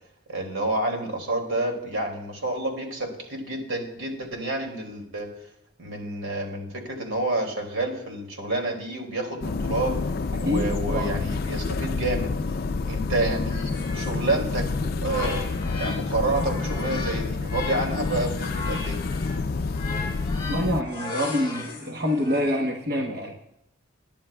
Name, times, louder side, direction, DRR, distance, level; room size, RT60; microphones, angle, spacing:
voice 1, 0.3-5.3 5.8-10.0 10.4-12.3 12.8-14.7 15.0-19.0, right 2 dB, 80° right, 2 dB, 2.5 m, -29 dB
sound 1, 9.4-20.8, left 3 dB, 45° left, 0.4 m, -28 dB
voice 2, 10.3-11.1 20.5-23.4, left 1 dB, 50° right, 2 dB, 1.0 m, -26 dB
sound 2, 13.5-16.0 16.3-22.4, left 3 dB, 25° left, 2.3 m, -37 dB
20.5 x 10.5 x 2.3 m, 0.81 s
head